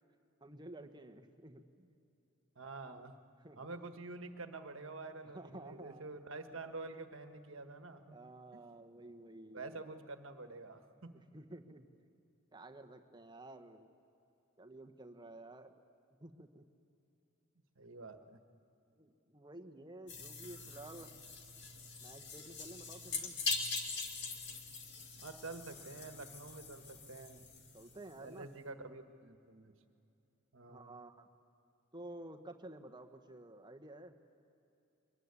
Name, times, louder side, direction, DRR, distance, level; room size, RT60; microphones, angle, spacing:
voice 1, 0.4-1.9 3.4-3.7 5.2-6.1 8.1-9.8 11.1-11.9 12.5-13.9 14.6-15.8 16.2-16.6 18.9-21.1 22.0-23.4 27.7-28.5 30.7-31.3 31.9-34.1, right 1 dB, 20° right, 6 dB, 1.2 m, -52 dB
voice 2, 2.5-3.2 3.6-8.2 9.5-11.2 17.7-18.4 25.2-27.4 28.2-29.7 30.5-31.0, right 3 dB, 65° right, 7 dB, 1.5 m, -48 dB
sound 1, 20.1-28.2, left 4 dB, 55° left, 2.2 m, -43 dB
23.5 x 21.5 x 9.7 m, 2.7 s
head